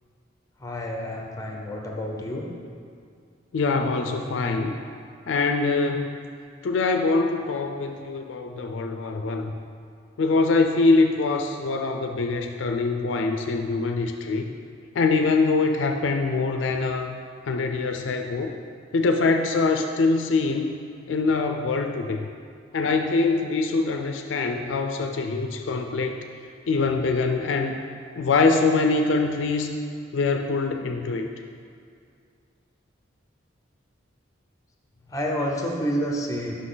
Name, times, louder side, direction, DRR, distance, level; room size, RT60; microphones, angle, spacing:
voice 1, 0.6-2.5 35.1-36.7, equal, 20° left, 0 dB, 0.7 m, -29 dB
voice 2, 3.5-4.8 5.3-6.2 6.6-9.5 10.2-14.5 15.0-17.1 17.5-18.5 18.9-20.7 21.1-22.3 22.7-26.2 26.7-27.7 28.2-29.8 30.1-31.3, left 3 dB, 70° left, 5 dB, 0.4 m, -23 dB
6.0 x 5.7 x 3.8 m, 2.3 s
head